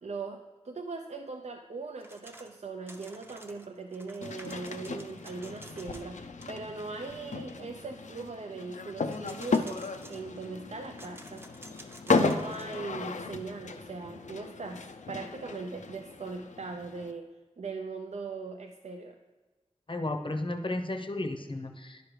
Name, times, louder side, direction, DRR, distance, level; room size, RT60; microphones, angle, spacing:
voice 1, 0.0-9.8 10.1-11.5 12.1-17.3 17.6-19.2, right 4 dB, 65° right, 4 dB, 0.4 m, -40 dB
sound 1, 2.0-2.6 2.9-6.2 6.4-6.5 9.1-10.5 11.0-12.8, right 1 dB, 20° right, 0.7 m, -51 dB
sound 2, 4.2-17.1, left 4 dB, 80° left, 0.4 m, -35 dB
voice 2, 19.9-22.0, left 2 dB, 45° left, 5 dB, 0.6 m, -33 dB
10.5 x 5.0 x 3.2 m, 1.2 s
wide cardioid pair, 45°, 12 cm